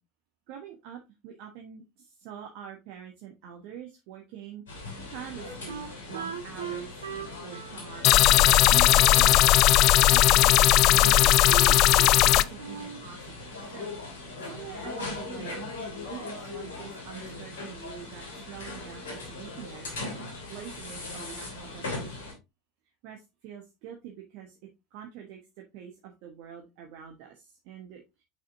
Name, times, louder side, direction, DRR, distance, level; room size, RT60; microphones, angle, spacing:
voice 1, 0.5-1.8 2.2-4.6 5.1-8.1 8.7-9.4 10.0-13.9 14.5-15.7 16.1-19.9 20.5-22.3 23.0-24.5 24.9-25.4 25.7-27.3 27.7-28.0, right 9 dB, 55° right, 2 dB, 1.2 m, -44 dB
sound 1, 4.7-22.3, left 2 dB, 70° left, 2.7 m, -40 dB
Wind instrument woodwind instrument, 5.7-9.1 9.4-10.5 11.0-12.3 12.6-13.1, right 8 dB, 75° right, 1.6 m, -39 dB
sound 2, 8.0-12.4, left 15 dB, 50° left, 0.3 m, -18 dB
6.7 x 5.7 x 2.7 m, 0.23 s
figure-of-eight pair, 75°, 0 cm